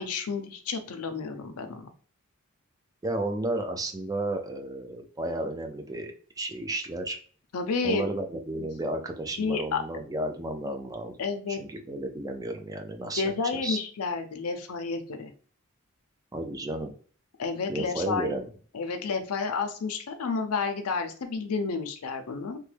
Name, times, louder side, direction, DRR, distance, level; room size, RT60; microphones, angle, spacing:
voice 1, 0.0-1.9 7.5-8.0 9.4-9.8 11.2-11.6 13.1-15.3 17.4-18.4 18.7-22.6, left 4 dB, 90° left, 7 dB, 0.5 m, -30 dB
voice 2, 3.0-7.2 7.8-11.2 11.5-13.3 13.6-13.8 16.3-16.9 17.7-18.5, right 1 dB, 15° right, 4 dB, 0.4 m, -33 dB
3.1 x 2.2 x 3.2 m, 0.42 s
head